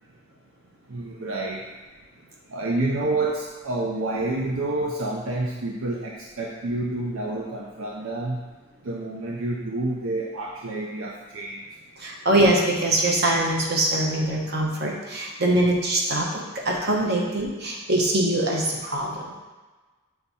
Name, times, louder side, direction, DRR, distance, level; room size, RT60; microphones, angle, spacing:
voice 1, 0.9-1.7 2.5-8.4 8.8-11.6, right 2 dB, 70° right, -2 dB, 0.6 m, -28 dB
voice 2, 12.0-19.3, right 1 dB, 50° right, -2 dB, 1.0 m, -23 dB
6.8 x 3.5 x 4.1 m, 1.3 s
head